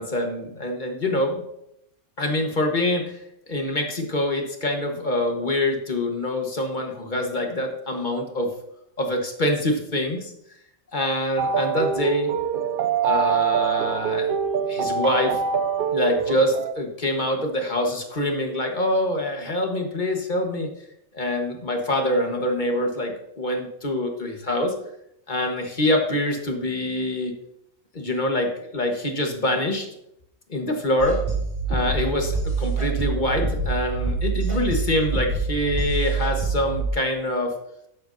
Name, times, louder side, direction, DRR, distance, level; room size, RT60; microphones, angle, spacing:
voice 1, 0.0-1.4 2.2-3.2 3.5-8.5 9.0-10.3 10.9-12.3 13.0-14.3 14.7-15.4 15.9-20.7 21.1-24.7 25.3-27.4 27.9-29.9 30.5-31.2 31.7-37.5, left 1 dB, 40° left, 3 dB, 1.4 m, -25 dB
sound 1, 11.4-16.7, right 7 dB, 65° right, 0.5 m, -24 dB
sound 2, 31.0-36.9, right 4 dB, 40° right, 3.8 m, -26 dB
12.0 x 8.2 x 2.7 m, 0.77 s
omnidirectional pair, 1.3 m